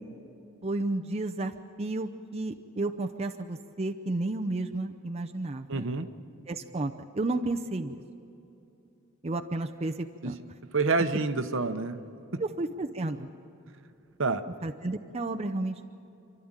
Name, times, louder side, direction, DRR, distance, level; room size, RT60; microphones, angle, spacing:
voice 1, 0.6-5.9 6.5-8.0 9.2-10.4 12.4-13.3 14.6-15.9, right 2 dB, 30° right, 4 dB, 0.6 m, -32 dB
voice 2, 5.7-6.1 10.2-10.3 10.7-12.0 12.3-12.4 14.2-14.4, right 3 dB, 65° right, 9 dB, 1.0 m, -27 dB
28.5 x 12.0 x 8.9 m, 2.8 s
head